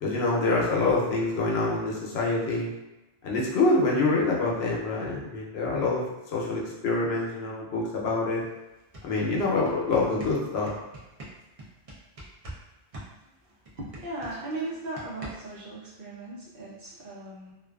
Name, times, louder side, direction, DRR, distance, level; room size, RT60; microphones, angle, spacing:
voice 1, 0.0-2.7 3.2-8.5 9.0-10.7, left 3 dB, 80° left, -3 dB, 0.9 m, -26 dB
sound 1, 8.4-8.5 8.8-12.6 12.9-15.6, right 1 dB, 40° right, 0.6 m, -43 dB
voice 2, 13.8-17.5, right 2 dB, 60° right, -7 dB, 0.9 m, -37 dB
2.4 x 2.3 x 2.3 m, 0.99 s
omnidirectional pair, 1.1 m